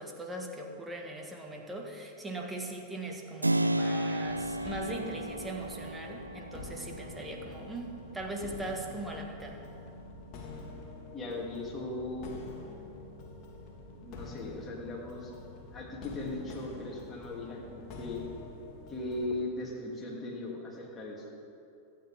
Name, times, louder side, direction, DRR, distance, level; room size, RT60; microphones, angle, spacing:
voice 1, 0.0-9.6, right 2 dB, 10° right, 1 dB, 1.9 m, -40 dB
Keyboard (musical), 3.4-12.0, right 1 dB, 85° right, 0.4 m, -36 dB
sound 1, 4.2-19.3, left 3 dB, 40° left, 2.1 m, -47 dB
voice 2, 11.1-12.3 14.0-15.3 15.7-18.2 18.9-21.3, left 2 dB, 15° left, -3 dB, 3.2 m, -38 dB
25.5 x 9.0 x 3.8 m, 2.7 s
figure-of-eight pair, 90°, 0 cm